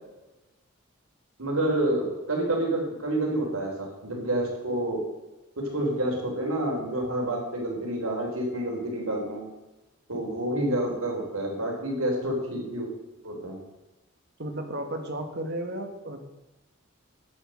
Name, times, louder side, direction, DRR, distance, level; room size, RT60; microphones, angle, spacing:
voice 1, 1.4-5.0 5.6-9.4 10.1-12.9 13.2-13.6, right 1 dB, 85° right, 0 dB, 4.1 m, -28 dB
voice 2, 14.4-16.2, right 1 dB, 50° right, 5 dB, 1.9 m, -33 dB
10.5 x 9.2 x 6.6 m, 1.1 s
head